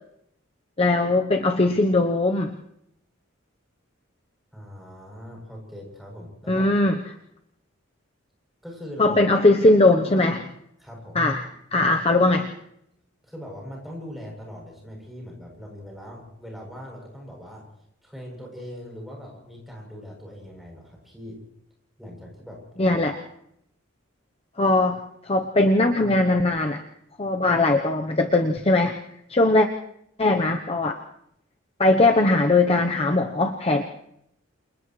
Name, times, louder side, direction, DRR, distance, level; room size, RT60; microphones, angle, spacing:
voice 1, 0.8-2.6 6.5-7.0 9.0-10.5 11.1-11.4 11.7-12.5 22.8-23.2 24.6-26.8 27.2-29.0 29.3-29.7 30.2-31.0 31.8-33.8, left 2 dB, 30° left, 4 dB, 0.9 m, -20 dB
voice 2, 4.5-6.7 8.6-9.2 10.8-11.2 13.2-17.7 18.0-21.4 22.0-23.0, equal, ahead, -1 dB, 7.9 m, -41 dB
28.5 x 28.5 x 3.2 m, 0.76 s
head